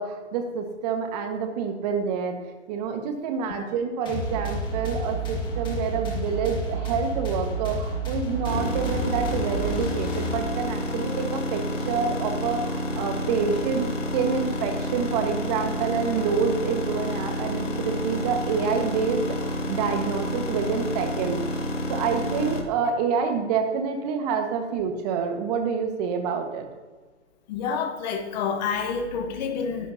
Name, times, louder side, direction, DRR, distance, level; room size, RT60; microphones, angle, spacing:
voice 1, 0.0-2.4 2.7-13.9 14.1-19.2 19.7-21.4 21.9-26.6, right 6 dB, 35° right, 5 dB, 1.6 m, -27 dB
sound 1, 4.1-10.8, right 2 dB, 15° left, 2.1 m, -30 dB
sound 2, 8.4-22.6, left 1 dB, 90° left, 2.7 m, -29 dB
voice 2, 27.5-29.9, left 6 dB, 35° left, 5 dB, 1.2 m, -28 dB
11.0 x 10.5 x 2.8 m, 1.3 s
hypercardioid pair, 140°, 36 cm